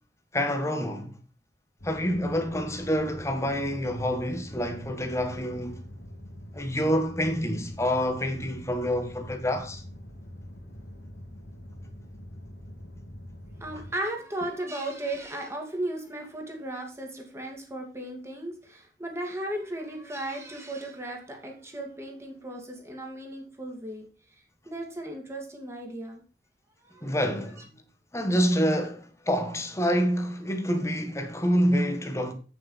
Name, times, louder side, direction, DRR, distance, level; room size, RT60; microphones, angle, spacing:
voice 1, 0.3-1.2 1.8-5.8 6.5-9.8 27.0-27.7 28.1-32.3, equal, 15° left, 1.4 m, -27 dB
sound 1, 1.8-13.9, equal, 80° left, 2.9 m, -44 dB
voice 2, 13.6-24.1 24.7-26.2 26.9-27.2, right 1 dB, 15° right, 2.4 m, -36 dB
8.3 x 7.0 x 5.6 m
head